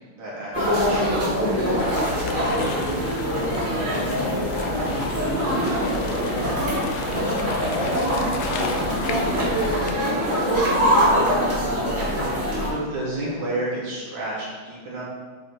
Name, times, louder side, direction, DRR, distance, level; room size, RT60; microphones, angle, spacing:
voice 1, 0.1-2.5 12.6-15.0, right 1 dB, 70° right, -6 dB, 2.4 m, -31 dB
sound 1, 0.5-12.7, equal, 25° right, 1.4 m, -23 dB
sound 2, 1.8-9.9, left 4 dB, 80° left, 1.5 m, -34 dB
voice 2, 3.4-3.8 4.0-11.4, left 2 dB, 65° left, -4 dB, 0.9 m, -35 dB
8.5 x 3.0 x 3.8 m, 1.4 s
omnidirectional pair, 2.4 m